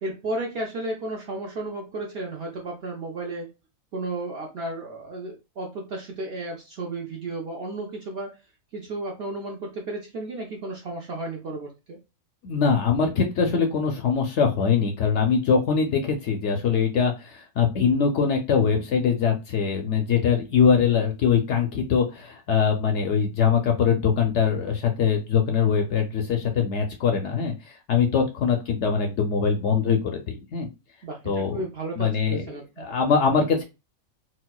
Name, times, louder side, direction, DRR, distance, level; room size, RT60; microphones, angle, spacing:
voice 1, 0.0-3.5 3.9-8.3 8.7-12.0 31.0-32.9, right 2 dB, 60° right, 1 dB, 0.7 m, -33 dB
voice 2, 12.4-30.7 31.3-31.6 32.0-32.4 32.8-33.6, left 6 dB, 65° left, 3 dB, 0.8 m, -22 dB
4.1 x 2.1 x 2.2 m, 0.26 s
omnidirectional pair, 1.5 m